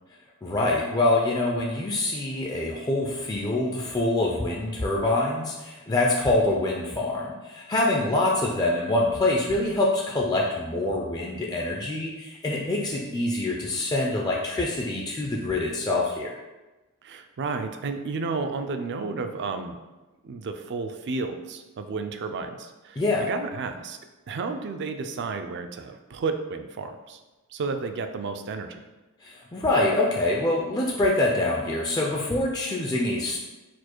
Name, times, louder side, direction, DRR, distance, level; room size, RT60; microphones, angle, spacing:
voice 1, 0.4-16.3 23.0-23.3 29.2-33.4, left 2 dB, 15° left, -2 dB, 0.4 m, -25 dB
voice 2, 17.0-19.8 20.2-24.0 24.3-27.2 27.5-28.8, right 4 dB, 50° right, 7 dB, 0.4 m, -32 dB
4.4 x 2.4 x 4.4 m, 1.1 s
head